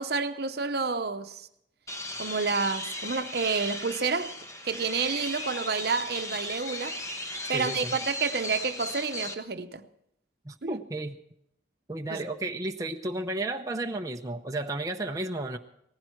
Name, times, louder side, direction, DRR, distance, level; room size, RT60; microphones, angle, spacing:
voice 1, 0.0-1.5 2.2-4.3 4.6-7.0 7.5-9.9 10.6-10.8 12.1-12.2, right 4 dB, 60° right, 0.8 m, -29 dB
sound 1, 1.9-9.3, left 1 dB, 15° left, 1.1 m, -37 dB
voice 2, 7.5-7.9 10.5-11.2 11.9-15.6, right 2 dB, 20° right, 0.6 m, -33 dB
18.5 x 15.0 x 4.5 m
head